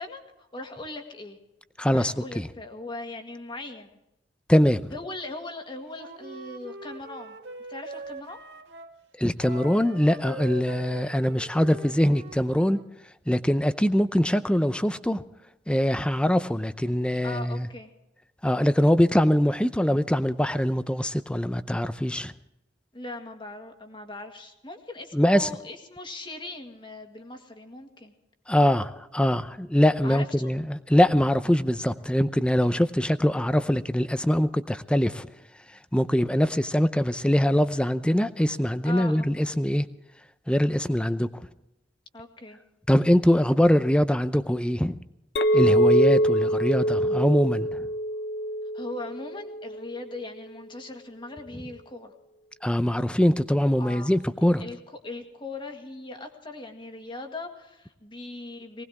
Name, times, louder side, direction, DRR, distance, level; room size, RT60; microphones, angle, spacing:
voice 1, 0.0-1.4 1.9-3.9 4.9-7.4 7.7-8.4 17.2-17.9 22.9-28.1 30.0-30.5 38.8-39.3 42.1-42.6 48.7-52.1 53.8-54.1 54.6-58.8, left 2 dB, 30° left, 1.9 m, -39 dB
voice 2, 1.8-2.5 4.5-4.9 9.2-12.8 13.3-15.2 15.7-17.7 18.4-22.3 25.1-25.5 28.5-35.3 35.9-39.9 40.5-41.3 42.9-45.0 45.5-47.9 52.6-54.6, equal, 5° left, 0.6 m, -23 dB
Wind instrument woodwind instrument, 5.9-8.9 9.4-12.9, right 2 dB, 90° right, 2.0 m, -42 dB
Chink clink, 45.4-49.8, equal, 70° left, 0.7 m, -24 dB
20.0 x 18.5 x 3.6 m
head